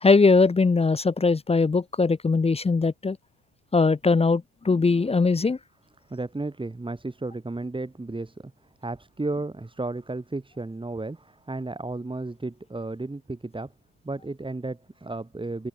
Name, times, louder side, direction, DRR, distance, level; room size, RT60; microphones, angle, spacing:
voice 1, 0.0-3.2 3.7-5.6, left 4 dB, 20° left, 0.8 m, -21 dB
voice 2, 6.1-8.5 8.8-13.7 14.0-15.7, right 2 dB, 15° right, 5.6 m, -33 dB
cardioid pair, 90°, 30 cm